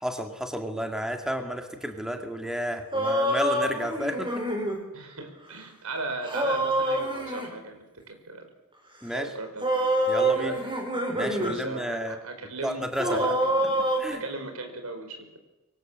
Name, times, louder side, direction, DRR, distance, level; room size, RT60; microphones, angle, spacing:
voice 1, 0.0-4.3 9.0-9.3 10.1-10.5 11.1-12.2 12.6-13.3 14.0-14.2, equal, 5° right, 4 dB, 2.2 m, -32 dB
sound 1, 2.9-4.8 6.2-7.5 9.6-11.6 11.9-12.0 13.0-14.0, right 1 dB, 25° right, 5.1 m, -26 dB
voice 2, 4.9-8.4 9.1-9.9 10.4-10.6 11.4-12.8 13.1-15.4, right 3 dB, 75° right, 6 dB, 5.5 m, -37 dB
26.0 x 23.5 x 7.7 m, 1.0 s
head